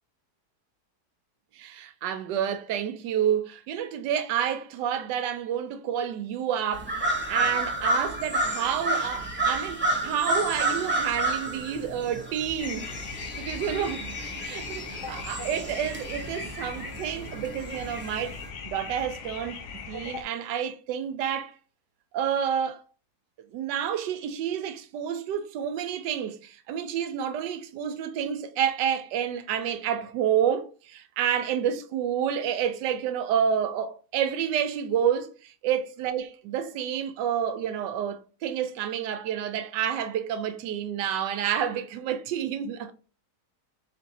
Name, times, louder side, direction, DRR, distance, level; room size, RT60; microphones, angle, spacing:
voice 1, 1.5-12.9 13.3-14.2 14.4-18.4 18.6-21.5 22.1-22.8 23.5-42.9, right 9 dB, 85° right, 1.2 m, -29 dB
sound 1, 6.7-18.5, right 2 dB, 10° right, 0.5 m, -30 dB
sound 2, 12.6-20.2, left 6 dB, 60° left, 0.8 m, -39 dB
3.8 x 2.6 x 4.0 m
omnidirectional pair, 1.8 m